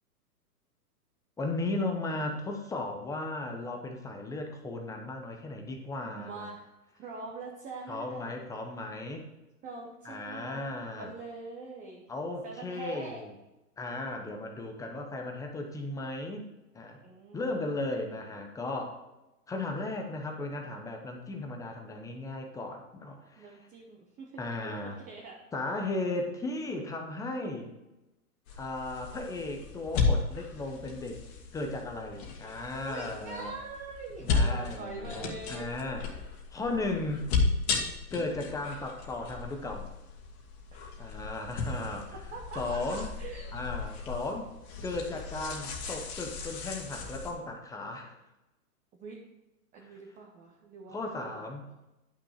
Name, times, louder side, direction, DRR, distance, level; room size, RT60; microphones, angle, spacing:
voice 1, 1.4-6.5 7.9-9.3 10.0-11.1 12.1-13.3 13.8-16.5 16.7-17.0 17.3-19.0 19.5-23.7 24.4-25.0 25.5-27.7 28.6-31.2 31.5-33.5 34.2-36.2 36.5-37.2 38.1-39.9 41.0-42.2 42.5-43.1 43.5-44.5 44.8-48.2 49.8-50.0 50.9-51.7, left 2 dB, 5° left, 3 dB, 0.8 m, -36 dB
voice 2, 6.0-6.7 7.0-8.4 9.6-12.0 12.4-13.2 17.0-17.6 23.4-24.4 24.8-25.4 32.9-35.8 40.7-41.2 42.3-43.5 49.0-49.2 49.7-51.8, right 3 dB, 15° right, -1 dB, 1.1 m, -43 dB
sound 1, 28.5-47.3, left 4 dB, 45° left, 2.1 m, -34 dB
10.5 x 6.2 x 5.0 m, 0.97 s
hypercardioid pair, 140°, 46 cm